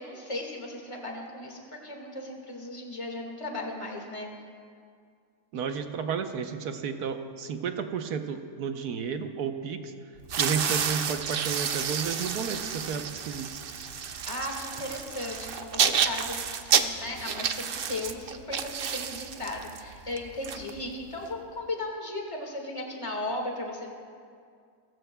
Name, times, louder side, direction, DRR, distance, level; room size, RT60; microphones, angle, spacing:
voice 1, 0.0-4.3 14.3-23.9, left 2 dB, 20° left, 0 dB, 1.8 m, -36 dB
voice 2, 5.5-9.9 10.4-13.5, right 6 dB, 80° right, 6 dB, 1.4 m, -32 dB
sound 1, 10.2-21.3, right 7 dB, 60° right, 0.6 m, -30 dB
28.0 x 16.0 x 2.3 m, 2.2 s
omnidirectional pair, 1.6 m